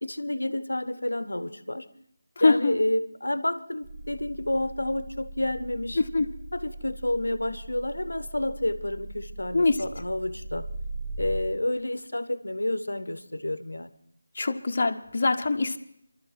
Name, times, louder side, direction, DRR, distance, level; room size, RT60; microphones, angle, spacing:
voice 1, 0.0-1.9 2.4-6.0 6.5-10.7 11.2-13.9, left 1 dB, 75° left, 15 dB, 0.7 m, -29 dB
voice 2, 2.4-2.8 6.0-6.3 9.5-9.8 14.4-15.8, left 3 dB, 40° left, 5 dB, 0.7 m, -23 dB
sound 1, 3.8-11.4, right 1 dB, 55° right, 4.9 m, -40 dB
27.5 x 12.5 x 3.2 m, 0.69 s
figure-of-eight pair, 160°, 0 cm